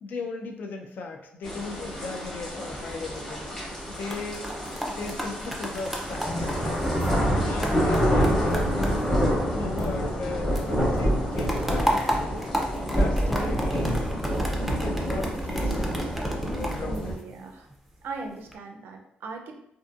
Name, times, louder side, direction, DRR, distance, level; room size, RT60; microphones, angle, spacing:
voice 1, 0.0-3.5 3.9-4.5 4.9-7.2 7.4-12.2 12.9-14.1 14.8-15.9 16.5-17.2, left 3 dB, 65° left, 3 dB, 0.4 m, -37 dB
sound 1, 1.4-17.1, equal, 10° left, 0.9 m, -27 dB
sound 2, 3.8-10.3 10.6-17.7 18.2-18.6, equal, 5° right, 0.4 m, -33 dB
voice 2, 16.9-17.7 18.0-19.6, right 3 dB, 75° right, 3 dB, 0.4 m, -39 dB
2.6 x 2.5 x 2.4 m, 0.76 s
cardioid pair, 115°, 3 cm